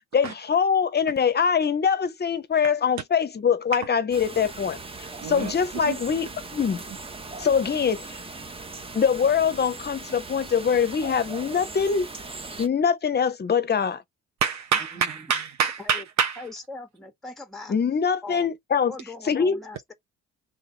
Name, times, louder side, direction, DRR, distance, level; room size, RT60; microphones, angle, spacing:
voice 1, 0.1-4.8 5.2-6.8 7.4-8.0 8.9-12.1 12.6-14.0 17.7-18.9 19.3-19.6, left 6 dB, 35° left, 0.7 m, -23 dB
sound 1, 4.1-12.7, right 3 dB, 20° right, 0.8 m, -39 dB
voice 2, 5.2-5.5 5.8-6.0 14.4-16.4, right 7 dB, 65° right, 0.7 m, -26 dB
voice 3, 14.9-15.3 15.8-16.0 16.4-17.7 18.2-18.5 18.9-19.9, left 3 dB, ahead, 0.9 m, -40 dB
3.4 x 2.5 x 4.2 m
cardioid pair, 90°, 30 cm